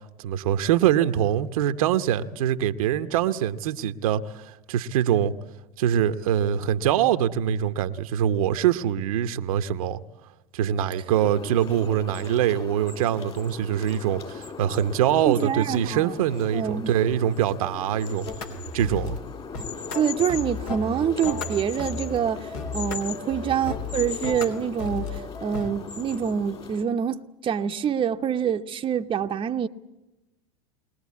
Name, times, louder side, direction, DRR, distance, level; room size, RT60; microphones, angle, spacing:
voice 1, 0.2-5.3 5.8-10.0 10.5-18.3 18.7-19.2, right 10 dB, 75° right, 0.9 m, -24 dB
sound 1, 11.1-26.8, left 6 dB, 30° left, 3.1 m, -39 dB
voice 2, 15.3-16.1 16.5-16.9 19.9-29.7, right 8 dB, 30° right, 0.8 m, -26 dB
sound 2, 18.3-19.2 19.5-25.7, left 3 dB, 70° left, 3.4 m, -34 dB
22.0 x 19.5 x 8.4 m
hypercardioid pair, 95°, 18 cm